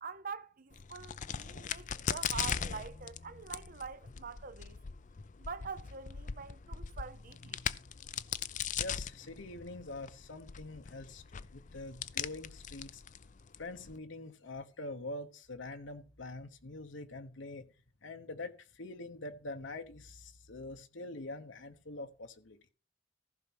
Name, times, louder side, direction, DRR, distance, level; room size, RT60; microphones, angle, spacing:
voice 1, 0.0-4.8 5.4-7.6, right 5 dB, 45° right, 0.8 m, -45 dB
Crack, 0.7-14.0, left 7 dB, 40° left, 0.5 m, -40 dB
voice 2, 8.8-13.0 13.6-17.7 18.0-22.7, left 2 dB, 75° left, 1.1 m, -45 dB
15.0 x 5.8 x 6.1 m
head